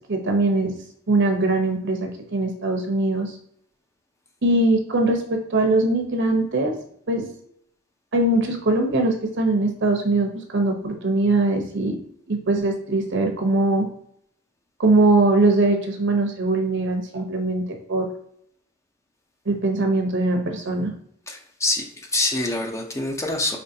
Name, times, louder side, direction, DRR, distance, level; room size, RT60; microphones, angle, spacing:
voice 1, 0.1-0.7 1.1-3.3 4.4-6.7 7.1-7.2 8.1-12.0 12.3-13.9 14.8-18.1 19.5-20.9, right 2 dB, 55° right, 4 dB, 0.8 m, -21 dB
voice 2, 21.3-23.6, left 2 dB, 15° left, 2 dB, 0.6 m, -25 dB
5.3 x 3.2 x 2.7 m, 0.66 s
head